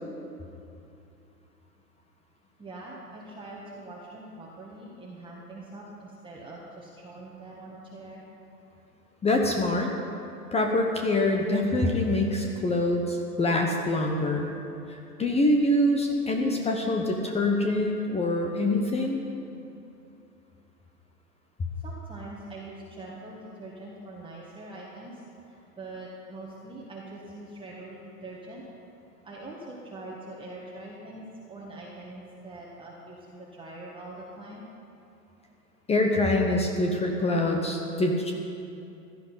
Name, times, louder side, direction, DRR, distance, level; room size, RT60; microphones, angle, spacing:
voice 1, 2.6-8.2 21.8-28.6 29.2-34.6, right 2 dB, 10° right, -5 dB, 1.7 m, -43 dB
voice 2, 9.2-9.9 10.5-14.5 14.9-19.2 35.9-38.3, left 1 dB, 15° left, 2 dB, 1.0 m, -25 dB
16.0 x 11.0 x 5.7 m, 2.8 s
figure-of-eight pair, 105°, 48 cm